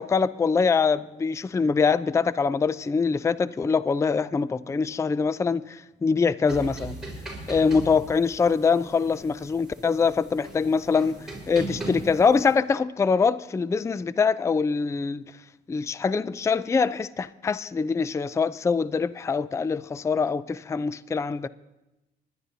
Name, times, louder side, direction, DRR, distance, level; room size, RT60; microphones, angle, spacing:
voice 1, 0.0-7.0 7.5-11.2 11.5-15.2 15.7-21.5, left 5 dB, 15° left, 0.3 m, -24 dB
sound 1, 6.5-12.5, right 2 dB, ahead, 4.6 m, -39 dB
27.5 x 11.0 x 2.7 m
cardioid pair, 90°, 20 cm